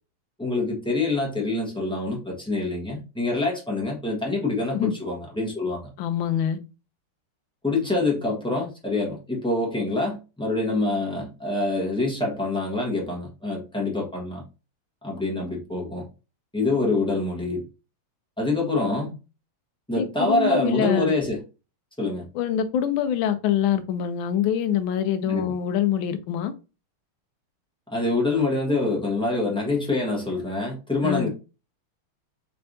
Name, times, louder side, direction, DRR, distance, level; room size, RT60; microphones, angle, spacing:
voice 1, 0.4-5.9 7.6-14.4 15.0-16.1 16.5-17.6 18.4-19.1 19.9-21.4 22.0-22.3 25.3-25.5 27.9-31.3, left 2 dB, 5° left, 0.8 m, -26 dB
voice 2, 6.0-6.6 19.9-21.1 22.3-26.5 31.0-31.3, left 9 dB, 75° left, 1.3 m, -24 dB
4.4 x 3.3 x 2.6 m
omnidirectional pair, 2.4 m